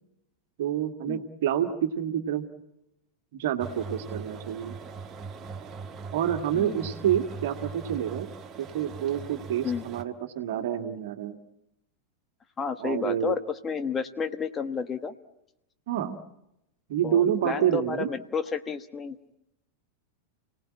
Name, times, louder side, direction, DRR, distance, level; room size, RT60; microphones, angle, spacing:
voice 1, 0.6-2.5 3.3-4.8 6.1-8.3 8.6-11.4 12.8-13.4 15.9-16.2 16.9-18.1, right 10 dB, 55° right, 7 dB, 1.9 m, -28 dB
sound 1, 3.6-10.0, right 4 dB, 25° right, 1.3 m, -40 dB
voice 2, 12.6-15.1 17.0-19.4, left 5 dB, 20° left, 11 dB, 1.1 m, -31 dB
30.0 x 18.5 x 8.8 m, 0.86 s
figure-of-eight pair, 90°, 0 cm